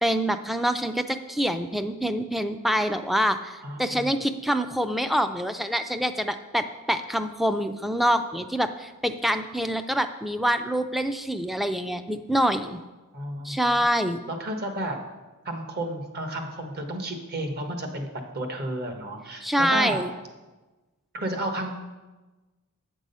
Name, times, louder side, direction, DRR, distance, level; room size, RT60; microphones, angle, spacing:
voice 1, 0.0-12.8 13.4-14.2 19.4-20.1, equal, ahead, 9 dB, 0.4 m, -26 dB
voice 2, 3.6-4.1 13.1-13.8 14.3-15.0 15.4-20.0 21.1-21.7, right 1 dB, 45° right, 4 dB, 1.2 m, -32 dB
8.5 x 6.2 x 5.4 m, 1.2 s
head